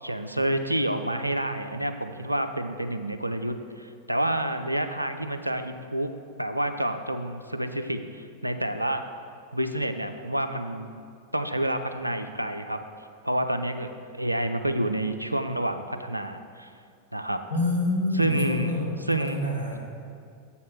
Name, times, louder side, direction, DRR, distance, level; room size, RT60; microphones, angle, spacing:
voice 1, 0.0-6.1 6.4-9.0 9.5-10.9 11.3-12.8 13.2-16.7 17.1-17.4 18.1-18.7 19.1-19.4, right 1 dB, 85° right, 8 dB, 0.4 m, -28 dB
voice 2, 17.5-19.8, left 2 dB, 75° left, -1 dB, 1.4 m, -27 dB
7.2 x 4.2 x 6.0 m, 2.3 s
figure-of-eight pair, 90°, 0 cm